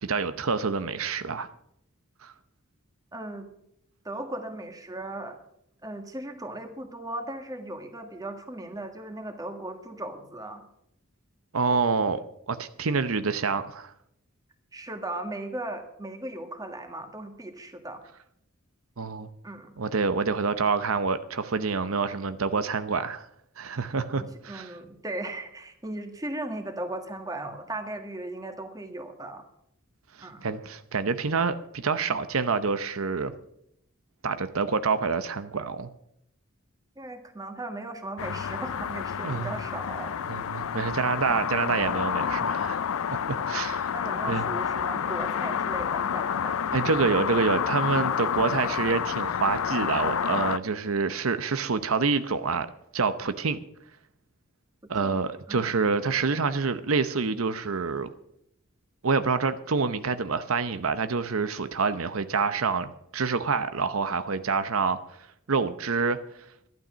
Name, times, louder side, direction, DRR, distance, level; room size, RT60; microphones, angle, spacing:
voice 1, 0.0-1.5 2.2-2.3 11.5-12.2 12.5-13.9 19.0-19.3 19.8-23.3 23.6-24.7 30.2-33.3 34.2-35.9 39.2-39.5 40.3-43.9 44.3-44.4 46.7-52.7 52.9-53.6 54.9-58.1 59.0-65.0 65.5-66.2, right 4 dB, 90° right, 0.8 m, -27 dB
voice 2, 3.1-3.5 4.0-5.4 5.8-10.6 14.7-18.0 19.4-19.7 24.1-29.5 30.2-30.4 36.9-40.2 40.9-41.0 43.9-46.6 55.0-55.2 55.5-55.7, right 1 dB, 20° right, 1.7 m, -37 dB
sound 1, 38.2-50.6, left 7 dB, 80° left, 0.5 m, -29 dB
12.0 x 12.0 x 6.2 m
head